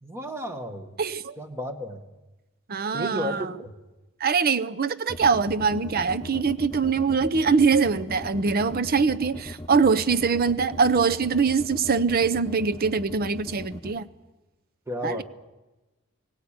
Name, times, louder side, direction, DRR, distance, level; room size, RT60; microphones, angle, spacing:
voice 1, 0.0-0.9 1.4-2.0 2.9-3.7 14.9-15.2, equal, 10° right, 7 dB, 1.5 m, -33 dB
voice 2, 1.0-1.4 2.7-3.5 4.2-14.1 15.0-15.2, right 5 dB, 45° right, 14 dB, 0.7 m, -23 dB
sound 1, 5.1-14.0, left 1 dB, 20° left, 1.2 m, -38 dB
18.0 x 17.5 x 8.8 m, 1.1 s
head